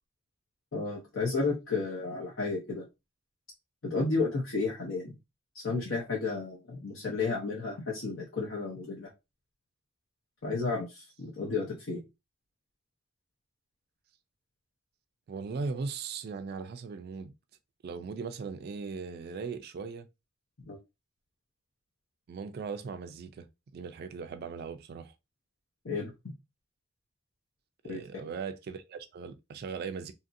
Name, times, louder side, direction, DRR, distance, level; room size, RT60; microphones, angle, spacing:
voice 1, 0.7-2.8 3.8-5.1 5.5-9.1 10.4-12.0 20.6-20.8 25.8-26.3 27.9-28.0, left 3 dB, 75° left, 0.8 m, -32 dB
voice 2, 15.3-17.3 17.8-20.1 22.3-23.5 23.7-25.1 27.8-30.1, right 5 dB, 55° right, 0.3 m, -38 dB
2.8 x 2.6 x 2.5 m
head